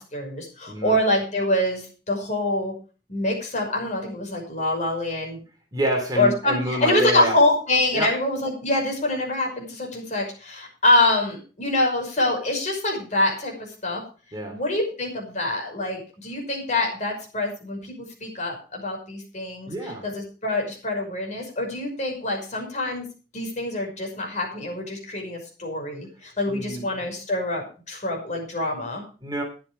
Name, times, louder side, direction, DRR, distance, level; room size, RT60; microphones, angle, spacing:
voice 1, 0.0-2.7 3.1-5.4 6.2-14.0 14.5-19.7 20.0-23.0 23.3-29.0, left 1 dB, 45° left, 1 dB, 5.7 m, -25 dB
voice 2, 0.7-1.0 5.7-7.4 7.9-8.1 14.3-14.6 19.7-20.1 26.5-26.8 29.2-29.4, right 1 dB, 25° right, 3 dB, 3.0 m, -27 dB
12.5 x 10.0 x 5.3 m, 0.36 s
head